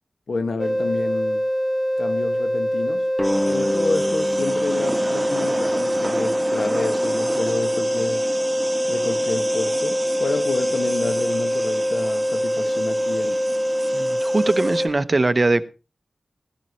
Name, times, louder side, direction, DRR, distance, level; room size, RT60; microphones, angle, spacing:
voice 1, 0.3-1.4 2.0-3.1 3.4-8.2 8.9-13.4, left 3 dB, 85° left, 1.7 m, -29 dB
sound 1, 0.6-14.9, equal, 5° left, 1.0 m, -23 dB
sound 2, 3.2-6.4, left 1 dB, 20° left, 1.3 m, -29 dB
sound 3, 3.2-14.9, right 2 dB, 25° right, 1.8 m, -32 dB
voice 2, 13.9-15.6, right 2 dB, 40° right, 0.9 m, -21 dB
16.5 x 14.0 x 3.1 m
cardioid pair, 55°, 0 cm